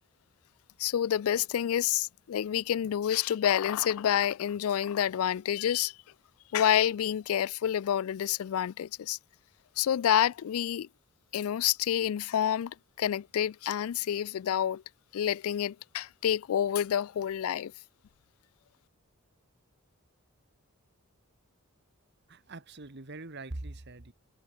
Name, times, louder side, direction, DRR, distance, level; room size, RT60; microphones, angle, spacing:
voice 1, 0.8-6.0 6.5-9.2 9.8-10.9 11.3-14.8 15.1-17.7, left 10 dB, 70° left, 0.3 m, -28 dB
voice 2, 22.3-24.1, right 2 dB, 50° right, 1.5 m, -42 dB
head